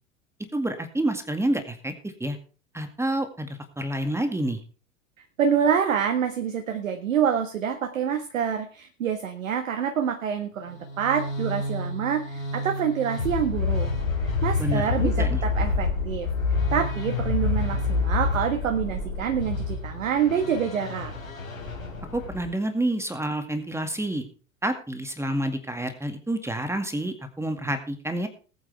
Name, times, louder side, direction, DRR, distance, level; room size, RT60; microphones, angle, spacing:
voice 1, 0.5-1.9 2.2-2.4 2.7-4.6 14.6-15.4 22.1-24.2 24.6-28.3, right 1 dB, 5° right, 7 dB, 2.1 m, -28 dB
voice 2, 5.4-13.9 14.2-21.1, right 8 dB, 75° right, 6 dB, 1.6 m, -27 dB
sound 1, 10.6-22.5, left 3 dB, 90° left, 4.4 m, -28 dB
19.5 x 9.3 x 3.4 m, 0.38 s
figure-of-eight pair, 80°, 40 cm